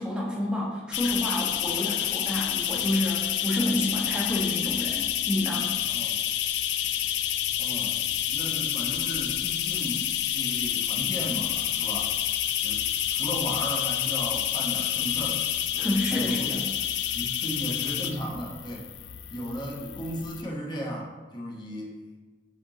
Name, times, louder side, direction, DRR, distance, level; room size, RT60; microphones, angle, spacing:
voice 1, 0.0-5.7 15.8-16.7, left 1 dB, 5° right, -5 dB, 1.2 m, -29 dB
sound 1, 0.9-20.4, left 11 dB, 70° left, 0.3 m, -29 dB
voice 2, 5.8-6.2 7.6-12.1 12.6-15.4 15.7-16.6 17.1-18.9 19.3-22.0, equal, 25° left, -2 dB, 1.0 m, -36 dB
7.4 x 3.6 x 3.8 m, 1.3 s
head